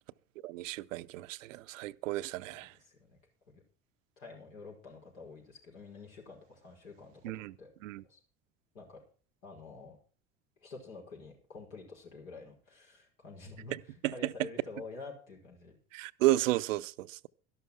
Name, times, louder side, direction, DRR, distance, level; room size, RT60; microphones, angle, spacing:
voice 1, 0.4-2.7 7.2-7.5 7.8-8.0 14.0-14.3 15.9-17.3, right 17 dB, 70° right, 0.6 m, -32 dB
voice 2, 2.4-3.2 3.5-3.6 4.2-7.7 8.1-8.2 8.7-9.0 9.4-10.0 10.6-15.8, left 3 dB, 75° left, 5.2 m, -48 dB
12.5 x 11.5 x 4.7 m
figure-of-eight pair, 70°, 40 cm